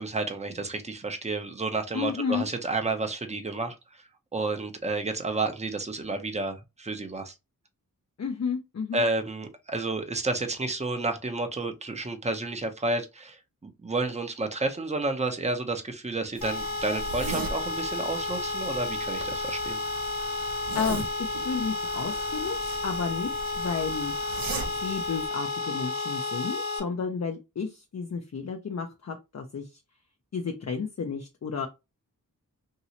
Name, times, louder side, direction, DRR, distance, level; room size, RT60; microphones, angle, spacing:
voice 1, 0.0-4.0 4.3-7.3 8.9-13.4 13.8-19.8, right 3 dB, 20° right, 0.6 m, -31 dB
voice 2, 1.9-2.5 8.2-9.0 20.7-24.1 24.8-29.8 30.3-31.7, left 6 dB, 50° left, 0.5 m, -32 dB
sound 1, 16.4-26.8, left 3 dB, 65° left, 1.4 m, -32 dB
sound 2, 16.4-25.3, right 4 dB, 70° right, 0.7 m, -40 dB
3.0 x 2.8 x 2.7 m
wide cardioid pair, 75°, 35 cm